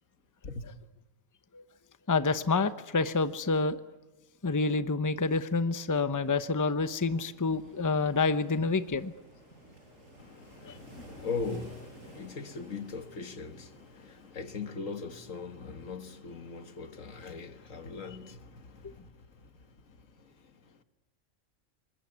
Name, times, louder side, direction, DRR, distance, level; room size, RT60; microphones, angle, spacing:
voice 1, 2.1-3.8 4.4-9.1 10.6-10.7, left 3 dB, 15° left, 0.8 m, -28 dB
sound 1, 6.2-14.3, equal, 85° right, 8.3 m, -53 dB
voice 2, 10.2-20.8, left 4 dB, 85° left, 2.0 m, -41 dB
24.5 x 21.5 x 9.6 m
omnidirectional pair, 1.3 m